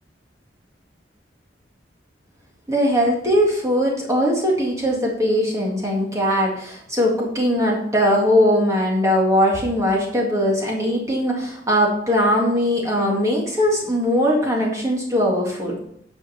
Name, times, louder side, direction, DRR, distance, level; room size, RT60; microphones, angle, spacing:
voice 1, 2.7-15.8, equal, 20° right, -2 dB, 1.8 m, -20 dB
9.6 x 5.3 x 5.7 m, 0.69 s
head